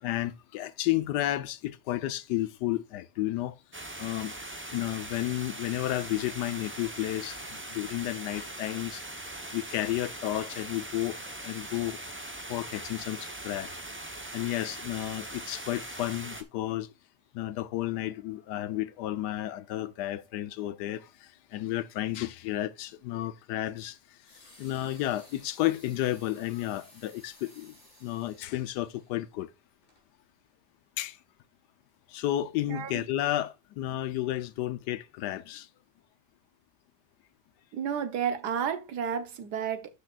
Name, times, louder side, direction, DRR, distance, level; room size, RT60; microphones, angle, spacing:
voice 1, 0.0-3.6 4.0-4.3 4.7-9.0 9.5-12.0 12.3-13.8 14.3-16.9 17.3-27.8 28.0-29.5 31.0-31.2 32.1-35.7, left 14 dB, 85° left, 1.3 m, -32 dB
sound 1, 3.7-16.4, right 1 dB, 15° right, 0.4 m, -41 dB
sound 2, 24.2-29.2 29.8-30.0, left 1 dB, 30° left, 4.1 m, -57 dB
voice 2, 32.7-33.0 37.7-39.9, right 8 dB, 75° right, 1.6 m, -31 dB
12.5 x 5.1 x 2.4 m
omnidirectional pair, 1.8 m